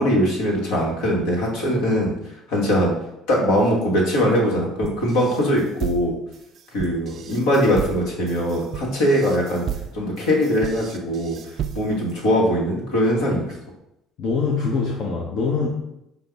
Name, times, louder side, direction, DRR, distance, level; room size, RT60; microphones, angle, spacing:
voice 1, 0.0-2.2 2.5-2.9 3.3-6.2 6.7-9.7 9.9-11.4 11.7-13.4, equal, 75° left, -2 dB, 1.1 m, -21 dB
sound 1, 4.8-12.1, right 9 dB, 55° right, 0.3 m, -33 dB
voice 2, 14.2-15.7, left 4 dB, 55° left, -3 dB, 0.7 m, -23 dB
5.2 x 2.1 x 3.4 m, 0.84 s
hypercardioid pair, 65°, 0 cm